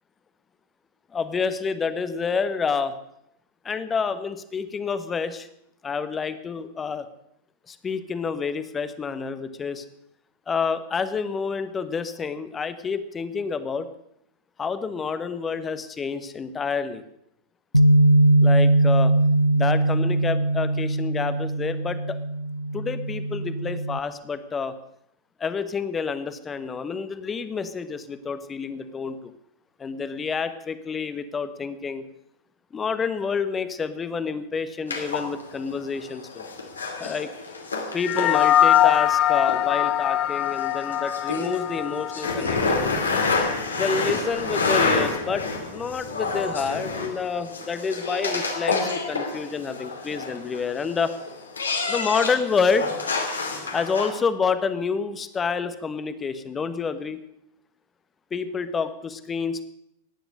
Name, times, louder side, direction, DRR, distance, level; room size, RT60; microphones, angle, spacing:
voice 1, 1.1-2.9 3.6-5.5 5.8-7.1 7.7-9.8 10.5-13.9 14.6-17.0 18.4-19.1 19.5-22.2 22.7-24.7 25.4-29.3 29.8-32.0 32.7-36.5 37.0-37.3 37.9-42.9 43.7-45.4 45.7-48.8 49.1-51.1 51.8-52.9 53.7-57.2 58.3-59.6, left 5 dB, 20° left, 12 dB, 1.2 m, -28 dB
Bass guitar, 17.7-24.0, right 1 dB, 85° right, 0.8 m, -20 dB
sound 1, 34.9-54.1, left 3 dB, 75° left, 2.5 m, -29 dB
sound 2, 38.0-42.6, left 12 dB, 35° left, 0.5 m, -22 dB
17.0 x 10.5 x 6.6 m, 0.79 s
figure-of-eight pair, 90°, 0 cm